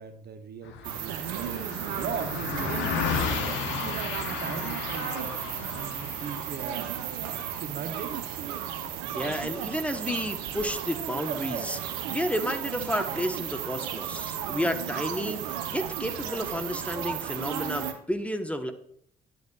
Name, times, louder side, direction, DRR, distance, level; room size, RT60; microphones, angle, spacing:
voice 1, 0.0-1.6 1.9-5.4 5.7-8.3, right 7 dB, 50° right, 8 dB, 0.9 m, -39 dB
Car passing by, 0.6-10.2, left 7 dB, 70° left, 0.9 m, -35 dB
sound 1, 0.8-17.9, right 10 dB, 75° right, 0.8 m, -34 dB
voice 2, 9.1-18.7, equal, 5° left, 6 dB, 1.0 m, -31 dB
10.5 x 8.1 x 2.4 m, 0.66 s
hypercardioid pair, 45°, 20 cm